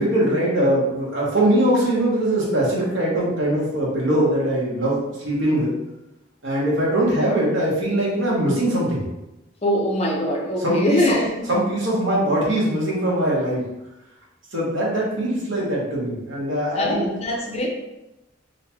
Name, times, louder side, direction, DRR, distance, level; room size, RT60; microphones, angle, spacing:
voice 1, 0.0-5.8 6.4-9.0 10.6-11.2 11.5-13.6 14.5-17.0, right 1 dB, 65° right, -5 dB, 1.1 m, -21 dB
voice 2, 9.6-11.5 16.8-17.7, left 1 dB, 30° left, 0 dB, 0.6 m, -22 dB
3.4 x 2.8 x 2.9 m, 0.96 s
head